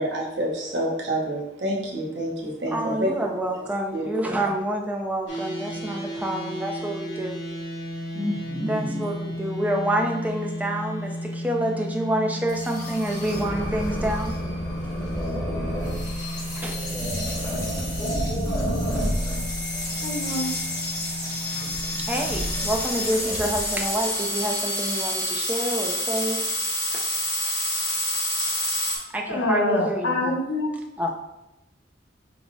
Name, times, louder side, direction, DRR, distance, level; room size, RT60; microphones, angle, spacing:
voice 1, 0.0-3.1 3.9-4.3 8.1-9.0, equal, 70° right, -2 dB, 0.9 m, -28 dB
voice 2, 2.7-7.4 8.7-14.3 14.8-14.9 16.6-16.8 22.0-26.4 26.9-27.0 29.1-30.4 31.0-31.1, right 1 dB, 10° right, 1 dB, 0.4 m, -28 dB
sound 1, 5.3-22.8, equal, 90° left, 1.2 m, -34 dB
sound 2, 12.5-29.0, left 1 dB, 20° left, 1.0 m, -28 dB
voice 3, 20.0-20.5 29.3-30.7, left 1 dB, 75° left, 0 dB, 0.8 m, -25 dB
4.6 x 2.1 x 3.9 m, 0.93 s
head